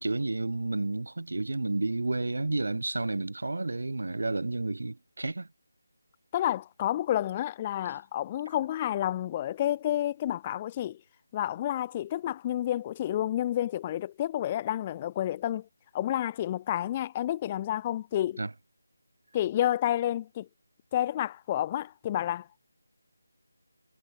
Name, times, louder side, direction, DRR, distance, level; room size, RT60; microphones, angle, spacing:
voice 1, 0.0-5.5 18.4-18.5, right 2 dB, 75° right, 0.3 m, -31 dB
voice 2, 6.3-11.0 11.3-15.7 15.9-18.4 19.3-20.5 20.9-22.5, left 12 dB, 20° left, 0.5 m, -30 dB
figure-of-eight pair, 170°, 0 cm